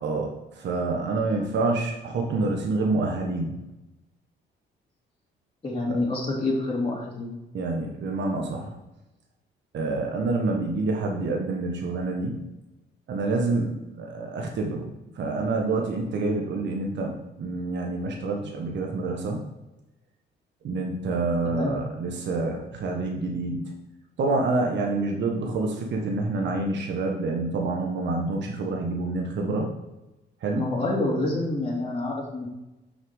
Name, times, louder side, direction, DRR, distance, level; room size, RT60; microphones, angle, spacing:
voice 1, 0.0-3.5 7.5-8.8 9.7-12.4 13.1-19.4 20.6-23.7 24.2-29.7 30.4-30.7, right 3 dB, 65° right, 1 dB, 1.4 m, -27 dB
voice 2, 5.6-7.3 21.4-21.8 30.5-32.5, left 2 dB, 25° left, -4 dB, 2.9 m, -27 dB
6.6 x 5.9 x 4.8 m, 0.97 s
cardioid pair, 90°, 20 cm